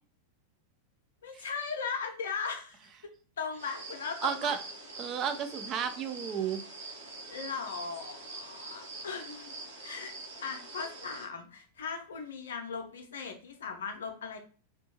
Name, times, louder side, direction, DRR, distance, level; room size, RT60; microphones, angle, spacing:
voice 1, 1.2-2.9 3.4-4.6 7.3-9.5 9.8-10.1 10.4-14.4, left 5 dB, 65° left, 5 dB, 0.5 m, -38 dB
sound 1, 3.6-11.3, right 2 dB, 65° right, 0.8 m, -45 dB
voice 2, 4.2-4.6 5.0-6.6, right 8 dB, 30° right, 8 dB, 0.3 m, -32 dB
2.5 x 2.2 x 2.8 m, 0.40 s
figure-of-eight pair, 90°, 0 cm